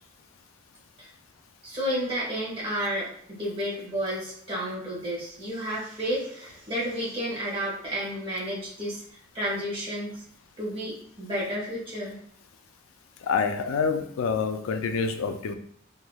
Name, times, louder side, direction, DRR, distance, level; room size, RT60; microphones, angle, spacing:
voice 1, 1.6-10.1 10.6-12.1, equal, 25° right, -7 dB, 1.2 m, -31 dB
voice 2, 13.2-15.5, left 5 dB, 90° left, 7 dB, 0.3 m, -27 dB
3.1 x 2.7 x 2.2 m, 0.64 s
head